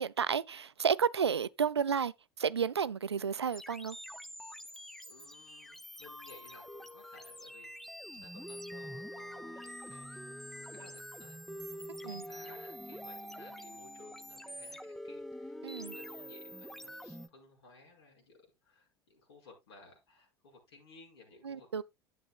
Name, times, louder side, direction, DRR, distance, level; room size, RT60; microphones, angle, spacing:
voice 1, 0.0-2.1 2.4-4.0 12.0-12.3 15.6-15.9 21.4-21.8, right 7 dB, 90° right, 0.4 m, -31 dB
sound 1, 3.5-17.3, equal, ahead, 0.6 m, -46 dB
voice 2, 4.6-11.4 12.2-21.8, left 3 dB, 75° left, 5.2 m, -58 dB
11.5 x 8.4 x 2.4 m
figure-of-eight pair, 75°, 13 cm